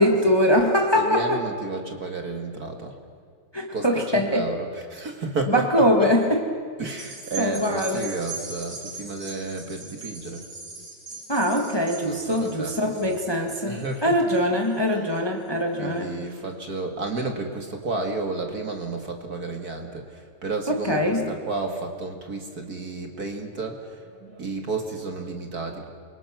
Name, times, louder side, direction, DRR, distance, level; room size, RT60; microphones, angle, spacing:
voice 1, 0.0-1.4 3.5-4.4 5.5-6.2 7.4-8.1 11.3-16.1 20.7-21.2, equal, 10° left, 3 dB, 2.0 m, -22 dB
voice 2, 1.0-3.0 3.7-6.1 6.8-10.5 12.0-13.2 13.7-14.3 15.8-25.9, right 3 dB, 45° right, 3 dB, 2.5 m, -32 dB
sound 1, 6.8-15.5 16.0-16.1, right 3 dB, 85° right, 8.1 m, -40 dB
27.5 x 24.5 x 6.1 m, 2.1 s
omnidirectional pair, 2.4 m